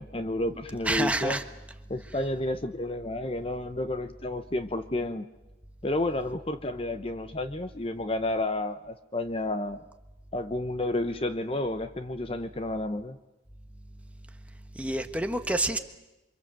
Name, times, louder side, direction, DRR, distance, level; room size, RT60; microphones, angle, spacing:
voice 1, 0.0-1.4 1.9-5.3 5.8-9.8 10.3-13.2, left 1 dB, 30° left, 10 dB, 0.9 m, -31 dB
voice 2, 0.9-1.4 14.7-15.8, right 1 dB, 10° right, 6 dB, 1.3 m, -27 dB
28.5 x 25.0 x 7.6 m, 0.98 s
head